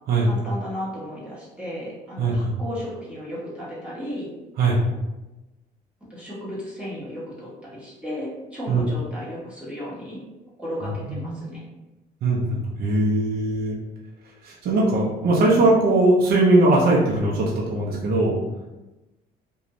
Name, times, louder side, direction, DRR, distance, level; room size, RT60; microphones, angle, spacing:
voice 1, 0.2-4.3 6.1-10.2 10.6-11.6, equal, 5° right, -9 dB, 1.2 m, -34 dB
voice 2, 2.2-2.5 4.6-4.8 8.7-8.8 11.1-11.4 12.2-13.8 14.4-18.4, right 2 dB, 65° right, -4 dB, 0.7 m, -20 dB
2.5 x 2.3 x 3.0 m, 1.0 s
cardioid pair, 110°, 17 cm